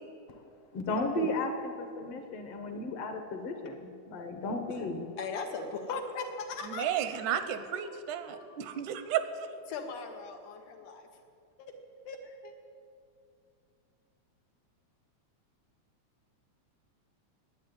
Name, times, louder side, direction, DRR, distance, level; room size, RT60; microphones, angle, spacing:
voice 1, 0.7-5.1, left 2 dB, 60° left, 5 dB, 1.9 m, -34 dB
voice 2, 5.2-7.2 7.5-8.0 8.3-8.6 9.7-11.1 11.6-11.7 12.1-12.5, left 4 dB, 90° left, 3 dB, 2.9 m, -39 dB
voice 3, 6.7-9.5, right 9 dB, 85° right, 10 dB, 2.2 m, -33 dB
11.0 x 9.3 x 9.6 m, 2.4 s
omnidirectional pair, 3.5 m